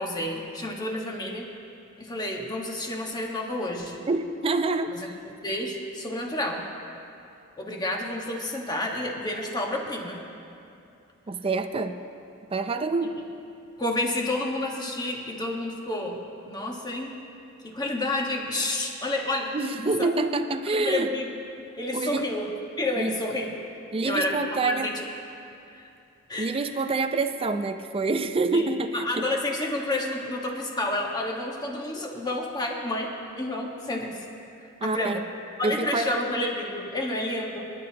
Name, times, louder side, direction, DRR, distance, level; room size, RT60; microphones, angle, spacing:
voice 1, 0.0-1.6 2.0-4.0 4.9-5.0 5.2-6.7 7.6-10.3 13.8-16.2 16.5-17.1 17.6-19.6 20.0-20.1 20.7-21.3 21.8-22.4 22.8-23.5 24.0-25.0 25.7-25.9 26.3-26.5 28.5-28.7 28.9-34.2 34.6-35.3 35.6-37.6, left 1 dB, 20° left, 0 dB, 1.4 m, -30 dB
voice 2, 4.1-5.1 11.3-12.0 12.5-13.1 19.5-21.1 21.9-22.3 23.0-23.1 23.9-24.9 26.4-29.3 34.8-35.2 35.6-36.1, right 3 dB, 25° right, 8 dB, 0.5 m, -27 dB
25.0 x 10.5 x 2.9 m, 2.6 s
head